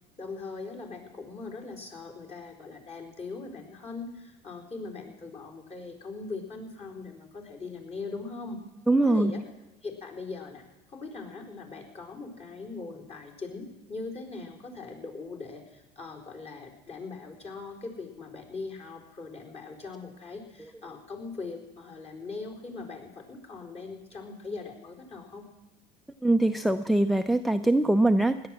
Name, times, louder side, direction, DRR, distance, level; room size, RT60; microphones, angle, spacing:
voice 1, 0.2-8.6 9.1-9.4 9.8-10.6 10.9-25.5, left 3 dB, 30° left, 3 dB, 4.3 m, -40 dB
voice 2, 8.9-9.3 26.2-28.5, right 2 dB, ahead, 7 dB, 0.6 m, -23 dB
17.0 x 11.0 x 7.6 m, 1.0 s
hypercardioid pair, 85°, 20 cm